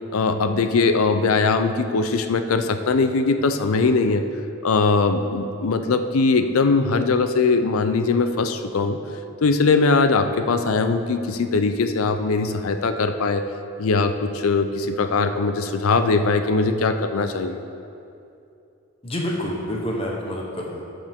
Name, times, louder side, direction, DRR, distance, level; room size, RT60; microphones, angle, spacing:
voice 1, 0.1-4.2 4.6-9.0 9.4-13.4 13.8-17.6, left 4 dB, 90° left, 8 dB, 0.5 m, -21 dB
voice 2, 19.0-20.8, equal, 25° left, -2 dB, 1.0 m, -28 dB
13.5 x 5.1 x 3.6 m, 2.6 s
head